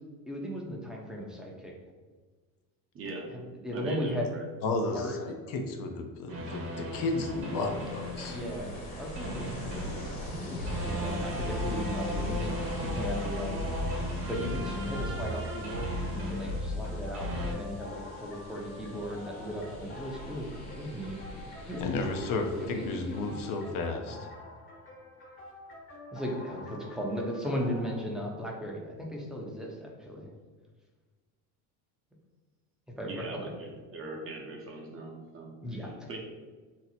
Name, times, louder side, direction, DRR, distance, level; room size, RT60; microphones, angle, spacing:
voice 1, 0.3-1.7 3.3-4.3 4.9-5.2 8.2-13.6 14.2-20.5 20.8-21.2 21.6-21.8 22.6-22.7 23.3-23.4 26.1-30.3 33.0-33.5 35.6-36.1, equal, ahead, -2 dB, 0.6 m, -37 dB
voice 2, 2.9-3.3 3.7-4.4 33.0-36.2, right 2 dB, 35° right, -1 dB, 0.7 m, -41 dB
voice 3, 4.6-8.4 21.8-24.3, left 3 dB, 55° left, 4 dB, 0.5 m, -33 dB
Ocean, 6.3-23.7, equal, 75° left, 1.3 m, -44 dB
sound 1, 6.3-8.8 9.1-17.5, left 1 dB, 60° right, 0.9 m, -34 dB
sound 2, 11.3-28.0, left 1 dB, 30° left, 0.8 m, -48 dB
2.8 x 2.0 x 4.0 m, 1.4 s
supercardioid pair, 100°, 39 cm